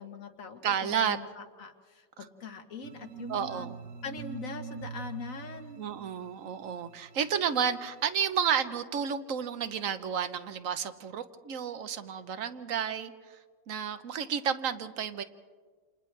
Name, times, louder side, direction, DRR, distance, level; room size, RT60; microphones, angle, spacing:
voice 1, 0.0-3.7 4.0-5.8, left 5 dB, 55° left, 6 dB, 1.6 m, -42 dB
voice 2, 0.6-1.2 3.3-3.8 5.8-13.4 13.7-15.2, right 7 dB, 55° right, 10 dB, 1.2 m, -31 dB
sound 1, 2.8-8.0, right 7 dB, 90° right, 1.7 m, -45 dB
29.0 x 28.5 x 3.3 m, 1.5 s
omnidirectional pair, 1.8 m